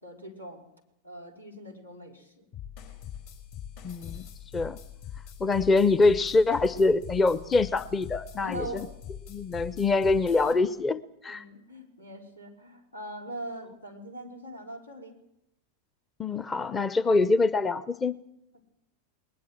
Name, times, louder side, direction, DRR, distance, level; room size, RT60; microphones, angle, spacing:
voice 1, 0.0-0.6 1.0-2.5 4.0-4.3 8.4-9.0 11.3-15.1, right 1 dB, 85° left, 3 dB, 4.1 m, -42 dB
sound 1, 2.5-10.5, left 9 dB, 50° left, 5.1 m, -43 dB
voice 2, 3.8-4.2 4.5-4.8 5.4-8.9 9.3-11.4 16.2-18.2, left 3 dB, 20° left, 18 dB, 0.7 m, -24 dB
20.5 x 20.0 x 7.6 m, 0.80 s
figure-of-eight pair, 90°, 0 cm